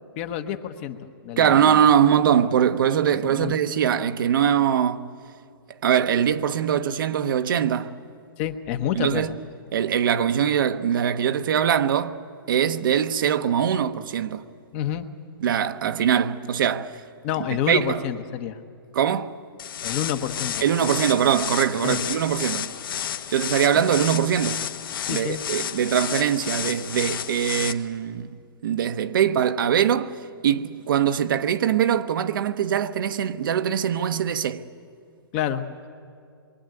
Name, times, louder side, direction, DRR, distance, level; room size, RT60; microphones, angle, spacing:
voice 1, 0.2-1.0 1.2-1.9 3.2-3.5 8.4-9.2 14.7-15.1 17.2-18.6 19.8-21.0 21.7-22.2 25.0-25.8 35.3-35.6, left 10 dB, 30° left, 1.2 m, -29 dB
voice 2, 1.4-5.1 5.8-7.9 8.9-9.3 9.7-12.2 12.5-14.4 15.4-17.0 17.7-18.0 18.9-19.3 20.6-22.7 23.3-24.6 25.1-28.3 28.6-30.1 30.4-34.6, right 9 dB, 60° right, 1.1 m, -22 dB
sound 1, 19.6-27.7, left 9 dB, 60° left, 1.5 m, -31 dB
26.5 x 23.5 x 9.1 m
hypercardioid pair, 155°, 13 cm